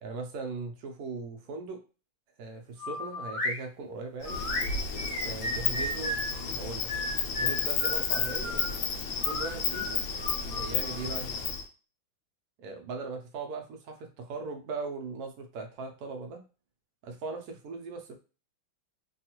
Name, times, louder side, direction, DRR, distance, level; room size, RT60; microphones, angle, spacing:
voice 1, 0.0-1.8 2.4-4.4 5.2-6.2 6.5-6.9 7.4-8.5 9.2-10.0 10.6-11.3 12.6-16.4 17.0-18.2, right 3 dB, 80° right, 4 dB, 0.8 m, -39 dB
sound 1, 2.8-3.6 4.2-6.3 6.9-8.7 9.2-11.1, left 1 dB, 40° left, 0.4 m, -34 dB
Insect, 4.2-11.6, left 6 dB, 80° left, 1.4 m, -32 dB
3.4 x 2.4 x 2.8 m, 0.33 s
omnidirectional pair, 2.3 m